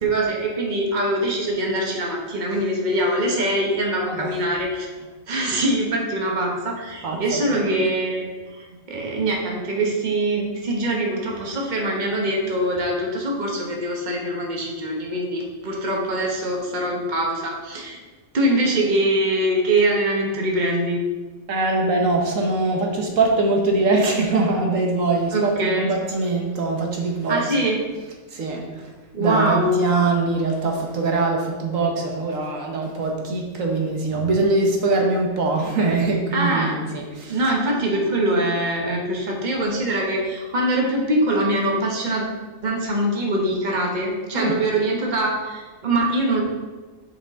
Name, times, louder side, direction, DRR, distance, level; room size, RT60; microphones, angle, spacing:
voice 1, 0.0-4.9 5.3-18.0 18.3-21.0 25.3-25.9 27.3-27.8 29.1-29.8 36.3-36.7 37.3-42.2 42.6-46.4, right 1 dB, 35° right, -1 dB, 1.3 m, -23 dB
voice 2, 4.1-4.4 7.0-7.7 21.5-27.4 28.3-28.9 29.2-37.4 44.3-44.5, right 3 dB, 85° right, 1 dB, 1.5 m, -22 dB
8.8 x 4.8 x 3.6 m, 1.3 s
omnidirectional pair, 1.3 m